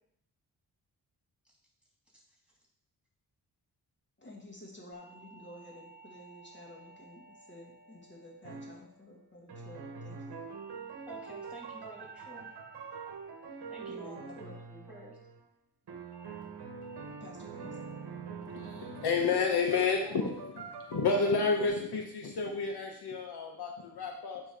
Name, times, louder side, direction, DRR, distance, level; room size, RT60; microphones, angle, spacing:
voice 1, 4.2-10.5 13.9-14.9 17.2-17.8, left 1 dB, 25° left, -2 dB, 1.7 m, -51 dB
sound 1, 4.9-9.4 10.5-15.0 16.1-16.4 16.8-17.2 17.6-18.0 18.4-18.8 19.2-19.6 20.0-20.4, right 3 dB, 45° left, 2.5 m, -57 dB
sound 2, 8.4-8.8 9.5-15.4 15.9-21.7, right 5 dB, 70° right, 1.1 m, -44 dB
voice 2, 11.1-12.5 13.7-14.5 14.9-15.2, right 1 dB, 5° right, -3 dB, 2.9 m, -50 dB
voice 3, 18.5-24.4, left 4 dB, 70° left, 2 dB, 1.0 m, -30 dB
9.0 x 3.1 x 4.9 m, 0.71 s
cardioid pair, 70°, 40 cm